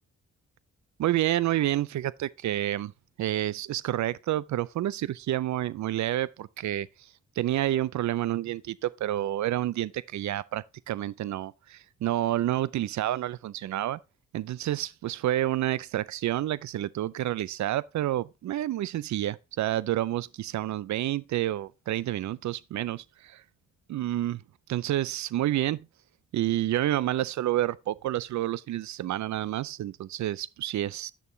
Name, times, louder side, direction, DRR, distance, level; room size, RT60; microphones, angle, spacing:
voice 1, 1.0-2.9 3.2-6.9 7.4-14.0 14.3-23.4 23.9-24.4 24.7-25.9 26.3-31.1, right 13 dB, 60° right, 0.5 m, -29 dB
8.6 x 6.7 x 2.7 m
supercardioid pair, 50°, 32 cm